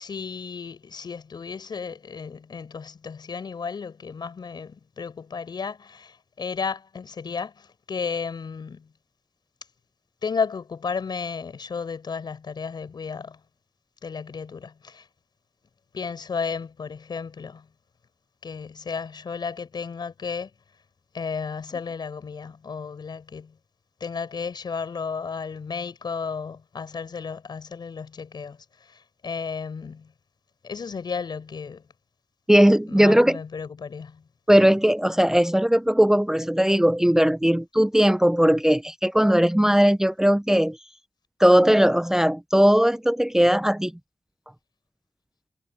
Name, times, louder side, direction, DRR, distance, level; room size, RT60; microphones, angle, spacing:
voice 1, 0.0-8.9 10.2-13.4 14.0-15.1 15.9-17.7 18.4-20.5 21.1-23.6 24.0-30.1 30.6-31.9 32.9-34.2, left 5 dB, 70° left, 6.2 m, -33 dB
voice 2, 32.5-33.4 34.5-40.8 41.4-43.9, equal, 5° right, 0.6 m, -19 dB
cardioid pair, 55°, 8 cm